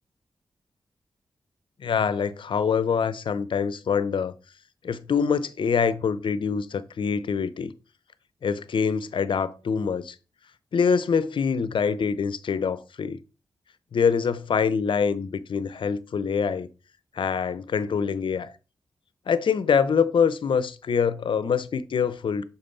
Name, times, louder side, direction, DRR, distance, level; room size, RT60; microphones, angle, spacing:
voice 1, 1.8-4.3 4.8-7.7 8.4-10.2 10.7-13.2 13.9-16.7 17.1-18.5 19.3-22.5, left 6 dB, 65° left, 0.7 m, -25 dB
6.9 x 4.1 x 4.1 m
supercardioid pair, 40°, 9 cm